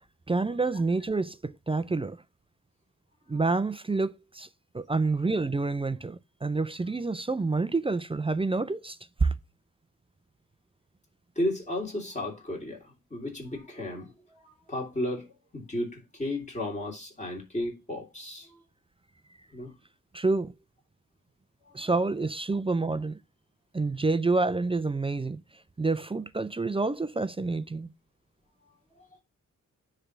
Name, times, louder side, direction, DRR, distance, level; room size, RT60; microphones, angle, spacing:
voice 1, 0.3-2.2 3.3-4.5 4.7-9.3 20.1-20.5 21.7-23.2 23.7-25.4 25.8-27.9, right 3 dB, 20° right, 0.3 m, -28 dB
voice 2, 11.3-15.3 15.5-18.6 19.5-19.7 21.8-21.9 29.0-29.1, left 1 dB, 20° left, 3.2 m, -34 dB
10.0 x 3.4 x 5.8 m
wide cardioid pair, 160°, 32 cm